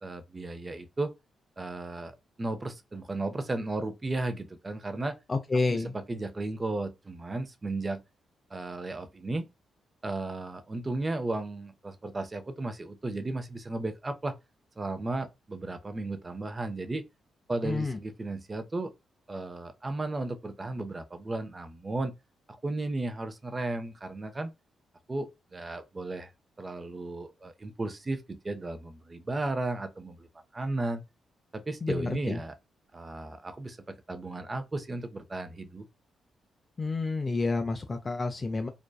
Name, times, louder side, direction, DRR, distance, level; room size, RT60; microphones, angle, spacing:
voice 1, 0.0-1.1 1.6-5.2 5.7-8.0 8.5-9.5 10.0-14.4 14.8-17.0 17.5-18.9 19.3-22.1 22.6-24.5 25.1-26.3 26.6-30.3 30.5-31.0 31.5-32.5 32.9-35.9, right 2 dB, 30° right, 0.4 m, -34 dB
voice 2, 5.3-5.9 17.6-18.0 31.8-32.4 36.8-38.7, left 3 dB, 35° left, 0.3 m, -29 dB
2.6 x 2.2 x 2.2 m
supercardioid pair, 55°, 0 cm